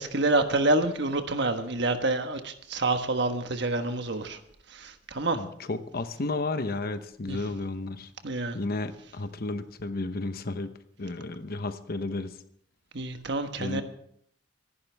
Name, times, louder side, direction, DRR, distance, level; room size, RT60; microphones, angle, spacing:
voice 1, 0.0-4.4 4.7-5.4 7.3-7.4 8.2-8.6 12.9-13.8, right 2 dB, 65° right, 7 dB, 1.4 m, -27 dB
voice 2, 5.3-8.1 8.5-10.7 11.0-12.3 13.6-13.8, left 2 dB, 55° left, 10 dB, 0.9 m, -32 dB
24.5 x 11.5 x 3.5 m, 0.70 s
head